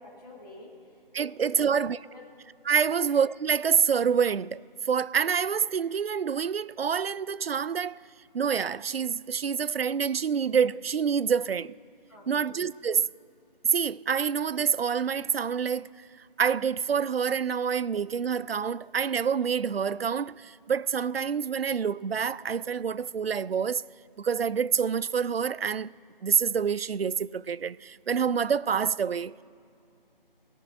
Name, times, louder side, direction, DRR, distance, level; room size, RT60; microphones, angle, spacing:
voice 1, 0.0-2.2 2.9-3.0 12.1-12.5, left 2 dB, 25° left, 2.7 m, -49 dB
voice 2, 1.1-2.0 2.7-4.6 4.9-8.0 8.3-11.7 12.3-13.1 13.7-15.9 16.4-23.8 24.2-25.9 26.2-29.4, right 7 dB, 90° right, 0.4 m, -27 dB
18.0 x 7.2 x 9.0 m
figure-of-eight pair, 165°, 29 cm